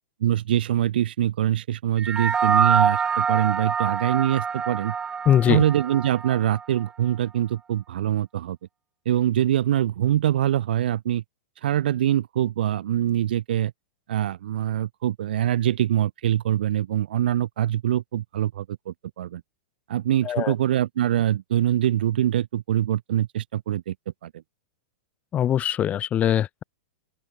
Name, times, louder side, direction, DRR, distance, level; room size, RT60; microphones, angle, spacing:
voice 1, 0.2-4.9 5.5-8.6 9.0-11.2 11.6-13.7 14.1-19.4 19.9-23.9 24.2-24.3, right 12 dB, 75° right, 2.7 m, -24 dB
sound 1, 2.0-6.6, right 6 dB, 15° right, 5.4 m, -25 dB
voice 2, 5.3-5.6 20.3-20.5 25.3-26.6, left 10 dB, 25° left, 3.7 m, -22 dB
open air
hypercardioid pair, 130°, 5 cm